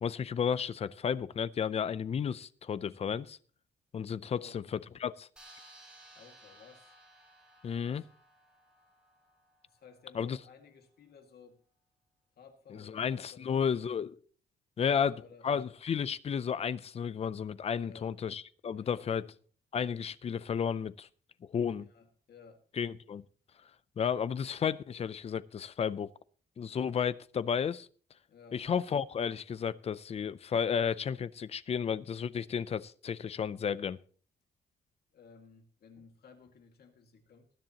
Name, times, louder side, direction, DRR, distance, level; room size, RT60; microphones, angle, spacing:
voice 1, 0.0-3.4 3.9-4.6 5.0-5.3 7.6-8.0 10.1-10.4 12.7-14.2 14.8-15.1 15.4-19.3 19.7-21.1 21.5-21.9 22.8-23.2 24.0-26.1 26.6-27.9 28.5-34.0, left 7 dB, 35° left, 0.5 m, -32 dB
voice 2, 4.3-4.6 6.1-7.0 7.8-8.1 9.7-11.6 12.4-14.1 14.8-15.5 17.8-18.2 18.7-19.3 21.6-22.6 28.3-28.6 35.1-37.5, left 5 dB, 60° left, 2.0 m, -56 dB
sound 1, 5.4-10.2, right 1 dB, 5° right, 4.3 m, -58 dB
19.5 x 10.5 x 2.9 m
wide cardioid pair, 165°, 18 cm